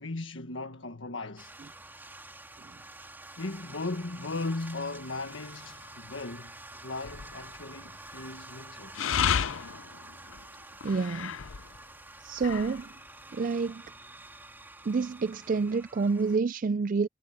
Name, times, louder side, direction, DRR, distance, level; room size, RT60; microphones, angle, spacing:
voice 1, 0.0-1.5 3.4-9.0, left 3 dB, 75° left, 1.6 m, -37 dB
sound 1, 1.4-16.4, right 2 dB, 10° right, 2.9 m, -48 dB
sound 2, 5.5-5.9 7.0-7.7 8.9-11.8 12.2-12.9, left 7 dB, 90° left, 0.6 m, -32 dB
voice 2, 10.8-11.4 12.2-12.9 13.3-13.8 14.8-17.1, right 4 dB, 45° right, 0.4 m, -28 dB
head